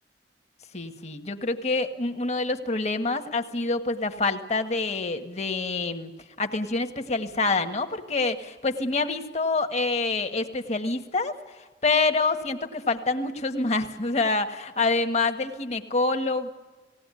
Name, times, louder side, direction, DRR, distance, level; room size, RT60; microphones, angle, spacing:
voice 1, 0.7-6.1 6.4-16.5, left 3 dB, 40° left, 7 dB, 1.6 m, -27 dB
19.5 x 18.0 x 9.8 m, 1.2 s
head